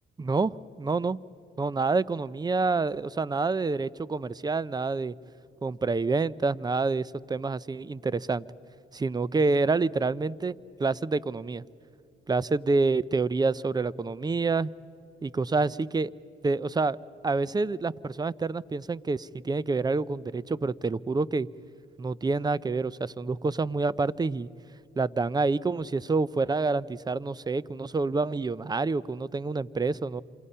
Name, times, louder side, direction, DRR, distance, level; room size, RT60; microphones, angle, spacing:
voice 1, 0.2-1.2 1.6-5.1 5.6-8.4 8.9-10.5 10.8-11.6 12.3-14.7 15.2-16.1 16.4-17.0 17.2-21.5 22.0-24.5 25.0-30.2, right 3 dB, 20° right, 21 dB, 0.5 m, -27 dB
27.5 x 27.0 x 5.6 m, 2.6 s
cardioid pair, 90°, 20 cm